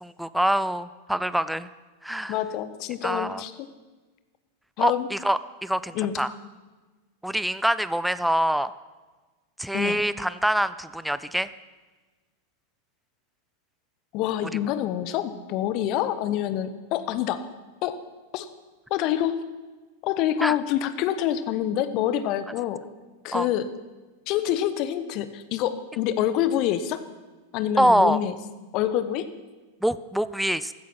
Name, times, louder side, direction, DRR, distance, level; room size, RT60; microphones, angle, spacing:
voice 1, 0.0-1.7 2.0-2.3 3.0-3.4 4.8-6.3 7.2-8.7 9.6-11.5 20.4-20.6 23.3-23.5 27.8-28.2 29.8-30.7, right 1 dB, ahead, 15 dB, 0.5 m, -25 dB
voice 2, 2.3-3.7 4.8-5.1 5.9-6.2 9.7-10.0 14.1-17.5 17.8-18.0 18.3-18.5 18.9-19.5 20.0-22.8 23.2-23.7 24.3-27.0 27.5-28.4 28.7-29.3, left 11 dB, 40° left, 12 dB, 1.1 m, -26 dB
15.5 x 13.5 x 5.9 m, 1.3 s
figure-of-eight pair, 90°, 0 cm